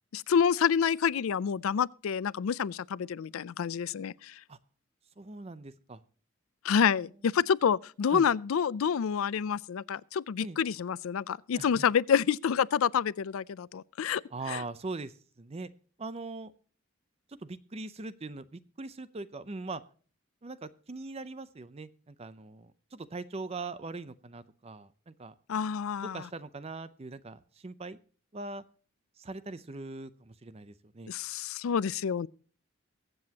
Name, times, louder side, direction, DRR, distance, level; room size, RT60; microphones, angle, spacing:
voice 1, 0.1-4.4 6.6-14.2 14.5-14.6 25.5-26.2 31.1-32.3, left 7 dB, 90° left, 0.4 m, -28 dB
voice 2, 5.2-6.0 8.1-8.3 10.4-10.6 11.6-11.9 14.3-15.7 16.0-16.5 17.4-19.8 20.4-25.3 26.0-28.0 28.3-28.6 29.2-31.1, right 3 dB, 30° right, 0.5 m, -41 dB
22.5 x 7.8 x 2.9 m
head